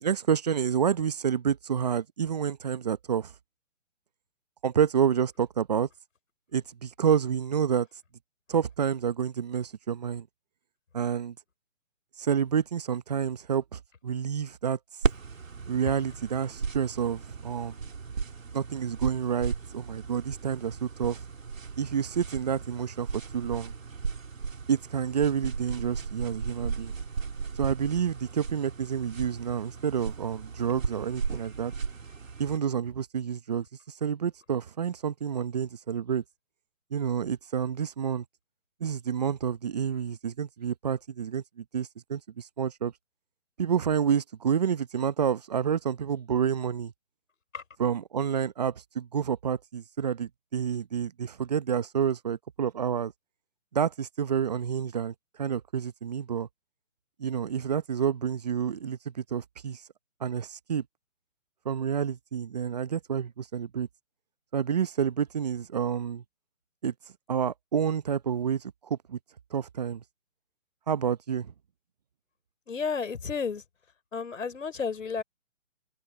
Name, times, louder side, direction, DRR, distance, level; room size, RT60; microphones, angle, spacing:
voice 1, 0.0-3.3 4.6-5.9 6.5-7.9 8.5-10.3 10.9-11.3 12.2-14.8 15.7-17.8 18.5-21.2 21.8-23.1 23.3-23.7 24.7-26.9 27.6-31.7 32.4-33.7 34.0-36.2 36.9-38.2 38.8-42.9 43.6-46.9 47.8-53.1 53.7-56.5 57.2-59.8 60.2-60.8 61.6-63.9 64.5-66.2 66.8-66.9 67.3-69.2 69.5-70.0 70.9-71.5, right 7 dB, 30° right, 0.8 m, -29 dB
sound 1, 15.0-32.6, right 5 dB, 75° right, 3.3 m, -36 dB
voice 2, 72.7-73.6 74.1-75.2, left 5 dB, 70° left, 4.9 m, -32 dB
open air
hypercardioid pair, 160°, 40 cm